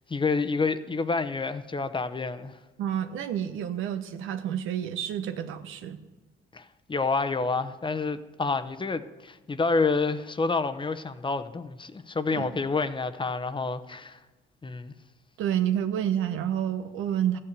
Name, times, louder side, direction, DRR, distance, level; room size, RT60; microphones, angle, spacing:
voice 1, 0.1-2.6 6.5-14.2 14.6-14.9, left 4 dB, 25° left, 0.9 m, -28 dB
voice 2, 2.8-6.0 12.3-12.5 15.4-17.4, right 10 dB, 90° right, 1.1 m, -29 dB
13.5 x 8.9 x 8.1 m
cardioid pair, 90°, 20 cm